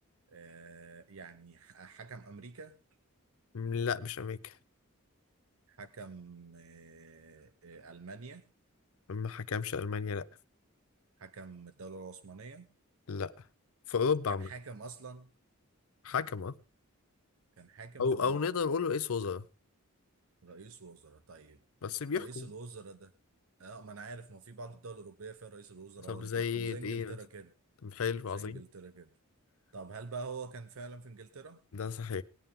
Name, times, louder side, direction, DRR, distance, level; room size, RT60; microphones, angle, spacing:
voice 1, 0.3-2.8 5.7-8.4 11.2-12.7 14.3-15.3 17.6-18.4 20.4-21.6 22.1-23.1 23.6-27.5 28.3-29.1 29.7-31.6, right 4 dB, 70° right, 0.8 m, -47 dB
voice 2, 3.5-4.5 9.1-10.3 13.1-13.3 13.9-14.5 16.0-16.5 18.0-19.4 21.8-22.5 26.1-27.1 27.8-28.6 31.7-32.2, left 5 dB, 70° left, 0.5 m, -33 dB
19.0 x 9.0 x 3.7 m
head